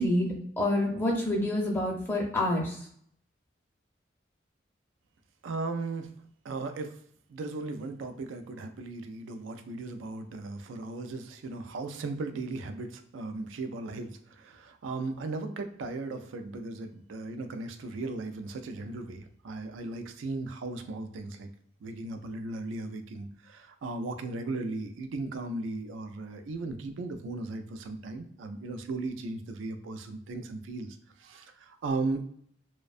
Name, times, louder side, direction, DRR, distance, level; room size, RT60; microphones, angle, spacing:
voice 1, 0.0-2.8, left 1 dB, 10° left, -3 dB, 0.5 m, -27 dB
voice 2, 5.4-6.1 6.4-7.0 7.3-21.5 21.8-32.2, right 3 dB, 90° right, 8 dB, 0.3 m, -37 dB
2.4 x 2.1 x 2.4 m, 0.65 s
head